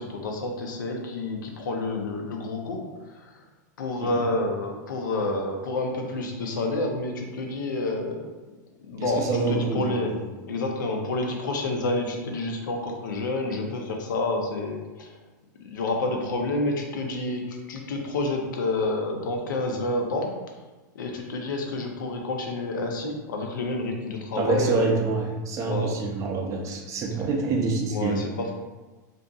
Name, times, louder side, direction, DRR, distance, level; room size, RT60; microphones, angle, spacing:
voice 1, 0.0-2.8 3.1-3.3 3.8-8.2 8.9-10.1 10.5-15.1 15.6-20.4 20.9-24.9 25.6-26.0 27.9-28.5, left 2 dB, 85° left, 2 dB, 0.5 m, -29 dB
voice 2, 9.0-10.2 24.4-28.2, right 4 dB, 30° right, 1 dB, 0.4 m, -26 dB
2.5 x 2.5 x 2.3 m, 1.2 s
hypercardioid pair, 125°, 10 cm